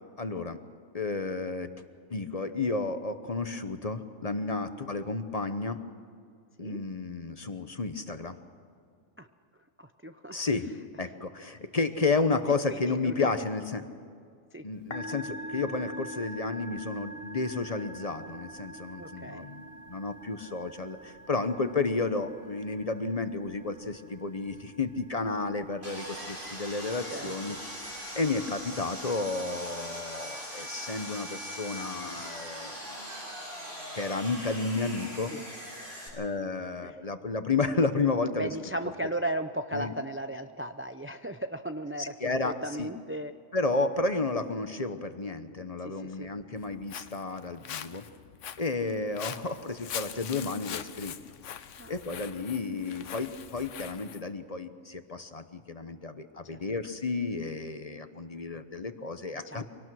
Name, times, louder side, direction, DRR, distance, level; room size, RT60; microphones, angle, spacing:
voice 1, 0.2-0.6 0.9-1.7 2.1-5.8 6.6-8.4 10.3-10.7 11.0-13.9 14.6-32.8 33.9-35.4 36.1-38.5 39.7-39.9 42.0-42.9 43.5-48.0 48.6-51.2 51.9-59.6, left 3 dB, 35° left, 10 dB, 0.9 m, -32 dB
voice 2, 9.8-10.3 12.3-13.3 14.5-14.7 19.0-19.5 27.1-27.6 35.3-35.4 36.8-37.0 38.3-43.3 45.8-46.3 51.8-52.3 56.5-56.6 59.4-59.6, right 1 dB, 15° right, 8 dB, 0.4 m, -36 dB
Musical instrument, 14.7-29.5, right 1 dB, 55° left, 1.6 m, -45 dB
Sawing, 25.8-36.1, equal, 60° right, 7.3 m, -41 dB
Walk footsteps, 46.6-54.2, left 9 dB, 90° left, 1.1 m, -42 dB
24.5 x 18.0 x 6.3 m, 2.3 s
omnidirectional pair, 1.2 m